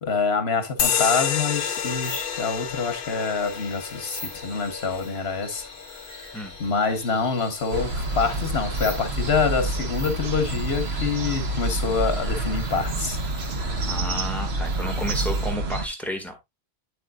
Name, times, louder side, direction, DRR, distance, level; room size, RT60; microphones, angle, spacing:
voice 1, 0.0-5.7 6.0-13.2, left 5 dB, 80° left, 1.6 m, -26 dB
sound 1, 0.8-7.9, left 8 dB, 60° left, 0.9 m, -30 dB
sound 2, 1.5-15.5, left 2 dB, 45° left, 2.6 m, -43 dB
sound 3, 7.7-15.9, right 2 dB, 90° right, 1.3 m, -28 dB
voice 2, 13.9-16.4, equal, ahead, 1.9 m, -32 dB
8.9 x 7.8 x 2.4 m
omnidirectional pair, 1.0 m